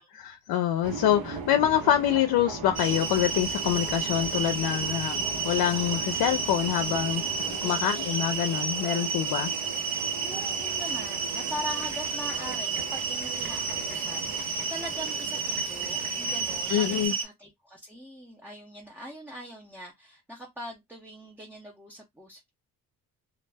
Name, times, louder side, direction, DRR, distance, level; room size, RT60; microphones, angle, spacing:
voice 1, 0.0-9.5 16.7-17.1, left 11 dB, 80° left, 0.5 m, -26 dB
sound 1, 0.8-17.1, right 4 dB, 85° right, 1.0 m, -40 dB
sound 2, 2.7-17.2, right 5 dB, 45° right, 0.9 m, -31 dB
voice 2, 7.6-8.0 10.2-22.5, equal, 5° right, 0.5 m, -42 dB
2.3 x 2.1 x 3.3 m
cardioid pair, 100°, 36 cm